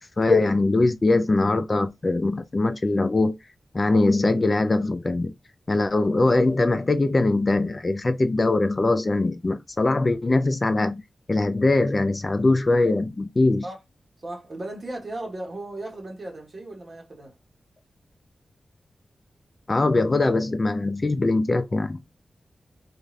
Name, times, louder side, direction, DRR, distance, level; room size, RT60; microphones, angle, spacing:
voice 1, 0.2-3.3 3.7-5.3 5.7-11.0 11.3-13.6 19.7-22.0, left 2 dB, 35° left, 0.3 m, -22 dB
voice 2, 14.2-17.4, right 1 dB, 45° right, 1.1 m, -36 dB
2.5 x 2.4 x 3.1 m
wide cardioid pair, 115°, 0 cm